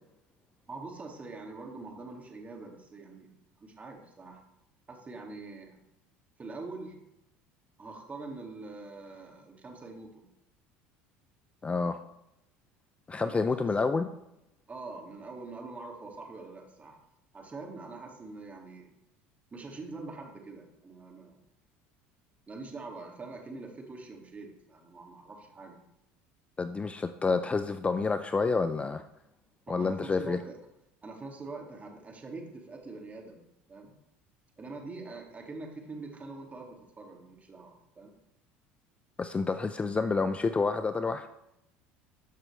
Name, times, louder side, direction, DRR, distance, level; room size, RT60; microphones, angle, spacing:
voice 1, 0.7-3.3 3.6-4.4 4.9-5.8 6.4-7.0 7.8-10.3 13.1-13.7 14.7-17.0 17.3-18.9 19.5-21.4 22.5-25.8 29.7-30.6 31.0-33.9 34.6-38.1, right 3 dB, 25° right, 1 dB, 2.4 m, -44 dB
voice 2, 11.6-12.0 13.1-14.1 26.6-29.0 29.7-30.4 39.2-41.3, left 4 dB, 20° left, 10 dB, 0.5 m, -29 dB
13.0 x 6.0 x 3.4 m, 0.85 s
hypercardioid pair, 80°, 6 cm